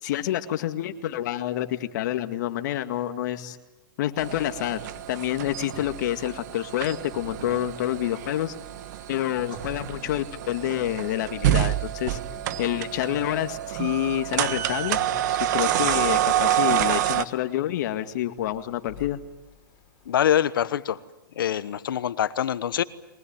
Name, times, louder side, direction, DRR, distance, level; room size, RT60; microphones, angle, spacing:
voice 1, 0.0-3.6 4.0-4.8 5.1-8.5 9.1-12.2 12.6-15.0 15.5-19.2, left 13 dB, 55° left, 8 dB, 2.0 m, -28 dB
sound 1, 4.2-17.2, right 12 dB, 55° right, 1.3 m, -28 dB
sound 2, 7.8-20.3, left 7 dB, 35° left, 5.5 m, -50 dB
voice 2, 20.1-21.0 21.4-22.8, left 10 dB, 75° left, 15 dB, 1.2 m, -24 dB
23.0 x 19.5 x 9.0 m, 1.0 s
hypercardioid pair, 135°, 11 cm